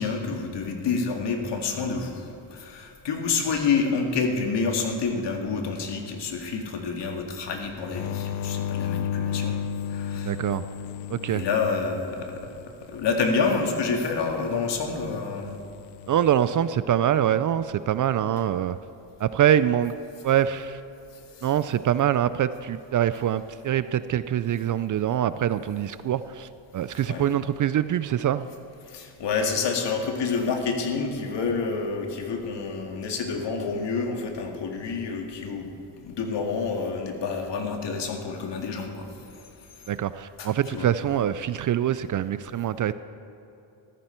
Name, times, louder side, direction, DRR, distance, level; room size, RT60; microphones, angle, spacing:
voice 1, 0.0-9.6 9.9-10.3 11.3-12.5 12.9-15.6 21.4-21.5 27.1-27.3 28.9-39.1 40.4-40.9, left 4 dB, 65° left, 3 dB, 2.0 m, -28 dB
sound 1, 7.9-12.5 15.8-16.3, left 8 dB, 90° left, 0.7 m, -32 dB
voice 2, 10.2-10.7 11.1-11.4 16.1-18.8 19.2-19.9 20.2-20.8 21.4-28.5 39.9-42.9, right 10 dB, 45° right, 14 dB, 0.4 m, -24 dB
14.5 x 14.0 x 4.4 m, 2.9 s
cardioid pair, 110°, 46 cm